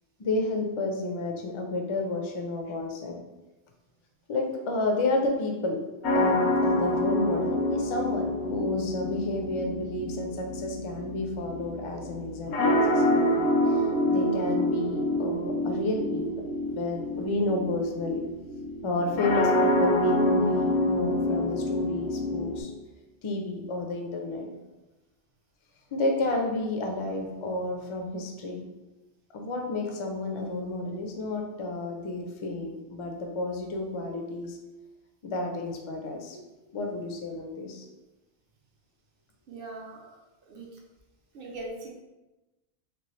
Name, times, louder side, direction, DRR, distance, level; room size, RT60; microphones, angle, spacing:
voice 1, 0.2-3.2 4.3-5.8 6.1-13.8 14.1-18.2 18.8-22.7 23.2-24.5 25.9-28.6 29.3-34.6 35.2-36.4 36.7-37.9, left 2 dB, 55° left, 2 dB, 0.3 m, -31 dB
sound 1, 6.0-22.6, left 1 dB, 80° left, 0.8 m, -27 dB
voice 2, 39.5-40.2 40.5-40.6 41.3-41.9, right 2 dB, 65° right, -1 dB, 0.7 m, -40 dB
3.0 x 2.6 x 3.0 m, 1.1 s
omnidirectional pair, 1.1 m